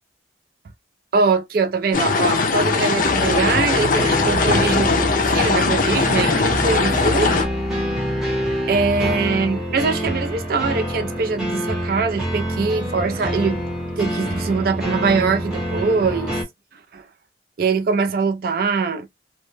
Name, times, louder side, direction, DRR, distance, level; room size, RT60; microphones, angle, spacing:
voice 1, 1.1-7.4 8.7-13.6 14.0-16.4 16.9-17.0 17.6-19.1, right 4 dB, 50° right, 0.3 m, -22 dB
sound 1, 1.9-7.5, left 4 dB, 45° left, 0.4 m, -20 dB
sound 2, 3.0-16.4, equal, ahead, 0.7 m, -26 dB
2.1 x 2.0 x 3.0 m
head